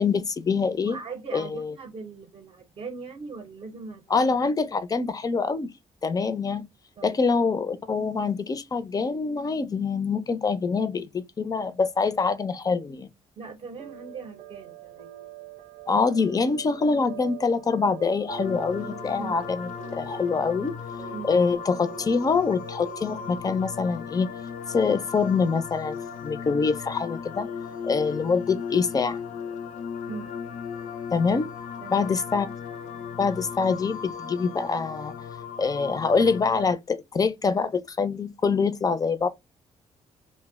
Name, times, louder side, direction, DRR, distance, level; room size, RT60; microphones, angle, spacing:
voice 1, 0.0-1.0 1.3-1.7 4.1-5.7 6.0-6.6 7.0-13.1 15.9-20.7 21.3-24.3 24.7-26.0 26.2-27.5 27.8-29.2 31.1-31.5 31.9-32.5 33.2-35.1 35.6-39.3, left 4 dB, 30° left, 0.4 m, -25 dB
voice 2, 0.8-4.3 7.0-7.2 13.4-15.1 19.2-19.4 21.1-21.4 30.1-30.3 31.8-32.2, right 4 dB, 40° right, 0.6 m, -40 dB
sound 1, 13.8-23.4, right 14 dB, 85° right, 0.6 m, -44 dB
sound 2, 18.3-36.7, left 7 dB, 80° left, 0.5 m, -37 dB
2.7 x 2.1 x 3.4 m
cardioid pair, 100°, 13 cm